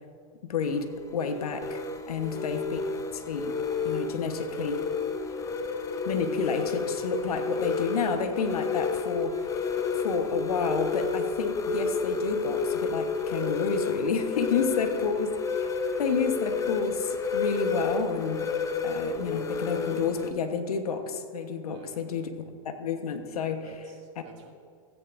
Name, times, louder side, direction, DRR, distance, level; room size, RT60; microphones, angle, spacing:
voice 1, 0.5-1.8 2.1-2.8 3.1-3.6 3.8-4.8 6.0-15.7 16.0-18.5 18.8-22.3 22.6-23.7 24.2-24.3, left 5 dB, 85° left, 7 dB, 1.2 m, -30 dB
sound 1, 0.6-20.3, left 4 dB, 15° left, 0.6 m, -31 dB
voice 2, 2.2-2.6 14.7-14.8 21.7-22.1 23.6-24.5, right 4 dB, 55° right, 0 dB, 2.1 m, -49 dB
15.5 x 9.5 x 2.6 m, 2.2 s
hypercardioid pair, 125°, 19 cm